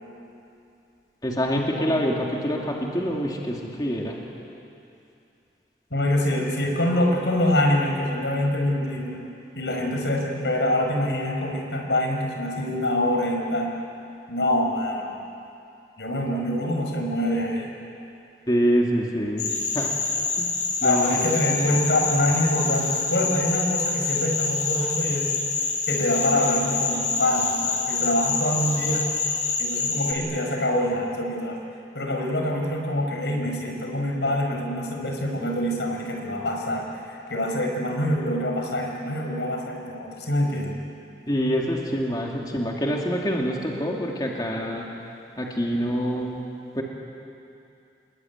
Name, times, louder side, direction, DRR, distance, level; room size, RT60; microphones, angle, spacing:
voice 1, 1.2-4.2 16.3-16.4 18.5-19.5 19.7-20.0 20.8-21.2 41.3-44.8 45.4-46.4 46.7-46.8, equal, 25° left, -1 dB, 2.7 m, -25 dB
voice 2, 5.9-9.2 9.6-13.7 14.3-15.2 16.0-17.7 20.8-25.3 25.9-29.1 29.6-31.6 31.9-40.8, left 1 dB, 85° left, 1 dB, 5.4 m, -25 dB
sound 1, 19.4-30.1, left 4 dB, 45° left, 5.1 m, -26 dB
28.0 x 21.5 x 9.6 m, 2.6 s
head